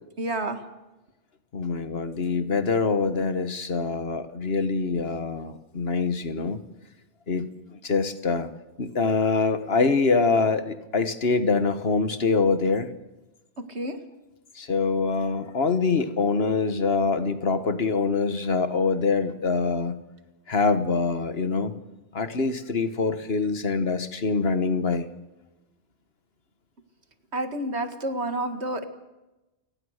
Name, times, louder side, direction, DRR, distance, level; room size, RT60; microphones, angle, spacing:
voice 1, 0.2-0.6 13.7-14.0 27.3-28.8, right 1 dB, 70° right, 8 dB, 2.2 m, -29 dB
voice 2, 1.5-6.6 7.3-7.5 7.8-8.5 8.8-12.9 14.5-20.0 20.5-21.8 22.1-25.1, left 4 dB, 60° left, 11 dB, 1.6 m, -24 dB
29.0 x 18.5 x 6.6 m, 1.0 s
omnidirectional pair, 1.2 m